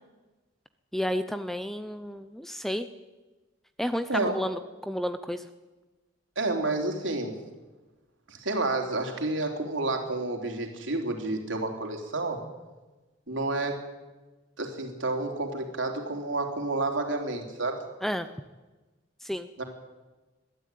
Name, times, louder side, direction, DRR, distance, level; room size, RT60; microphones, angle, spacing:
voice 1, 0.9-2.9 3.8-5.5 18.0-18.3 19.2-19.5, equal, ahead, 10 dB, 0.7 m, -31 dB
voice 2, 6.4-7.4 8.3-12.4 13.3-13.8 14.6-17.8 19.6-19.7, right 2 dB, 80° right, 3 dB, 3.5 m, -30 dB
22.0 x 13.5 x 9.3 m, 1.2 s
head